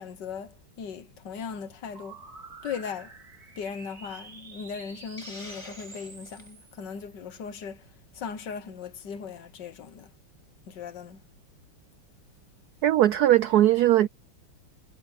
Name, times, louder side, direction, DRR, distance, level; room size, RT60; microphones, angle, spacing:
voice 1, 0.0-2.2 2.6-3.1 3.6-7.9 8.1-10.1 10.7-11.2, left 6 dB, 60° left, 1.7 m, -38 dB
sound 1, 1.9-7.4, right 4 dB, 45° right, 3.1 m, -48 dB
Hiss, 5.2-6.5, left 1 dB, 15° left, 2.6 m, -46 dB
voice 2, 12.8-14.1, right 13 dB, 75° right, 0.8 m, -19 dB
omnidirectional pair, 2.2 m